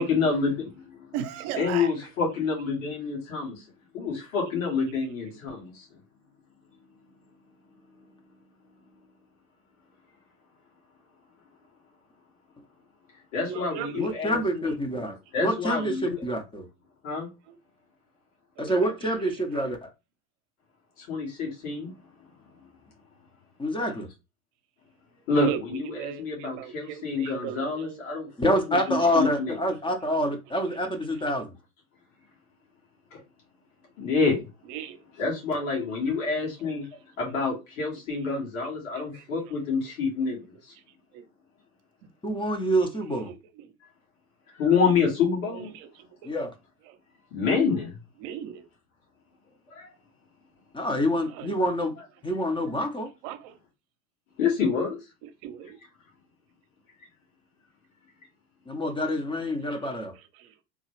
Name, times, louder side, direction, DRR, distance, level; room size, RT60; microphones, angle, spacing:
voice 1, 0.0-1.1 1.5-3.6 3.9-5.9 13.3-14.8 15.3-16.2 17.0-17.3 21.0-21.9 25.3-29.6 33.1-33.2 34.0-34.5 35.1-36.9 37.2-40.7 44.5-45.7 47.3-48.0 49.7-49.9 54.4-55.0, left 5 dB, 65° left, 2.2 m, -28 dB
voice 2, 1.1-1.9 13.5-14.0 17.5-17.6 18.7-18.9 19.5-19.6 25.4-28.0 34.7-35.0 39.1-39.2 41.1-41.2 43.3-43.4 43.6-43.7 45.5-45.9 46.2-46.3 48.2-48.6 51.4-51.5 53.2-53.5 55.4-55.8 60.4-60.5, right 10 dB, 55° right, 0.8 m, -36 dB
voice 3, 14.0-16.7 18.6-19.9 23.6-24.1 28.4-31.6 42.2-43.3 46.2-46.5 50.7-51.9 52.2-53.1 58.7-60.1, equal, 10° left, 0.7 m, -27 dB
3.5 x 2.3 x 3.2 m
hypercardioid pair, 95°, 42 cm